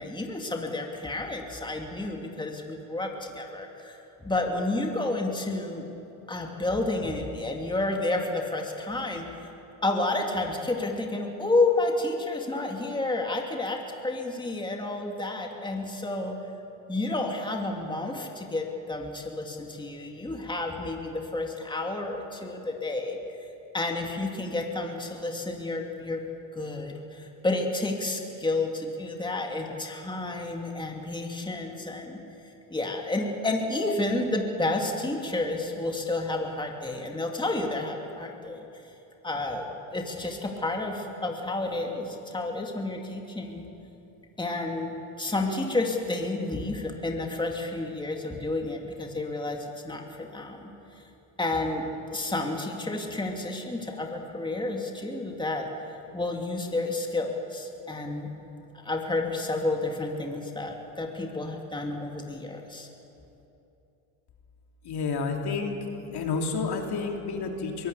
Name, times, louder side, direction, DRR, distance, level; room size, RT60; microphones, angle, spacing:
voice 1, 0.0-5.9 6.3-9.3 9.8-16.4 16.9-23.2 23.7-26.2 26.5-32.2 32.7-38.7 39.2-43.6 44.4-50.7 51.4-55.7 56.1-58.3 58.8-62.9, left 2 dB, 10° left, 2 dB, 2.5 m, -30 dB
voice 2, 64.8-65.8 66.1-67.9, left 4 dB, 55° left, 2 dB, 3.0 m, -30 dB
23.0 x 16.0 x 8.3 m, 2.9 s
supercardioid pair, 85°, 46 cm